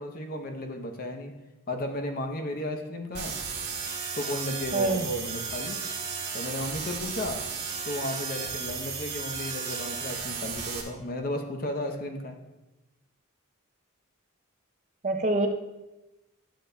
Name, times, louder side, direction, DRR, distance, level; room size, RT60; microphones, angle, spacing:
voice 1, 0.0-1.3 1.7-3.4 4.2-5.8 6.3-7.4 7.8-12.4, left 1 dB, 45° left, 4 dB, 0.7 m, -34 dB
sound 1, 3.1-10.8, right 5 dB, 55° right, 1.3 m, -34 dB
voice 2, 4.7-5.1 15.0-15.5, right 2 dB, 35° right, 4 dB, 0.5 m, -25 dB
10.5 x 6.6 x 2.2 m, 1.0 s
head